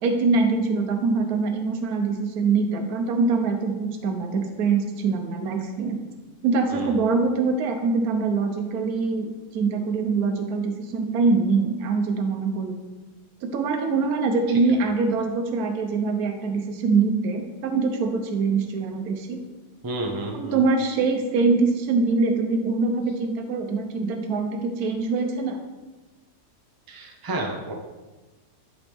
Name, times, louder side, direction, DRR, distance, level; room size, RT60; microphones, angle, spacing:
voice 1, 0.0-6.0 6.4-12.8 13.4-19.4 20.3-25.6, right 4 dB, 65° right, 4 dB, 1.3 m, -24 dB
voice 2, 19.8-20.6 26.9-27.7, right 1 dB, 20° right, 1 dB, 0.6 m, -31 dB
11.0 x 4.0 x 3.5 m, 1.2 s
omnidirectional pair, 1.7 m